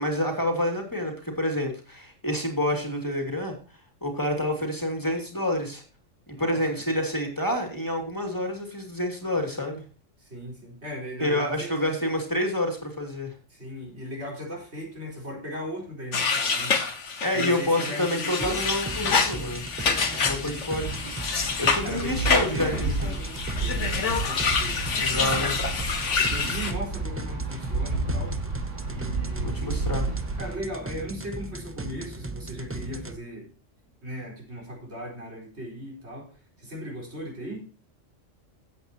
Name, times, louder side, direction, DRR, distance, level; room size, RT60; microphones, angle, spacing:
voice 1, 0.0-3.5 4.0-5.8 6.3-9.8 11.2-13.3 17.2-19.6 20.2-20.9 21.6-23.1 25.0-25.5 29.4-30.1, left 1 dB, 15° left, 3 dB, 2.7 m, -28 dB
voice 2, 6.3-6.8 10.2-12.0 13.5-16.8 17.3-18.6 20.4-20.7 21.8-22.2 22.5-25.7 26.2-28.4 28.9-29.9 30.4-33.5 34.0-37.6, equal, 60° right, -1 dB, 4.6 m, -38 dB
sound 1, 16.1-26.7, left 5 dB, 75° left, 1.6 m, -27 dB
sound 2, 18.4-33.2, right 2 dB, 20° right, 0.4 m, -37 dB
Wind, 20.8-30.6, right 3 dB, 80° right, 3.0 m, -32 dB
15.0 x 8.4 x 2.9 m, 0.37 s
omnidirectional pair, 1.3 m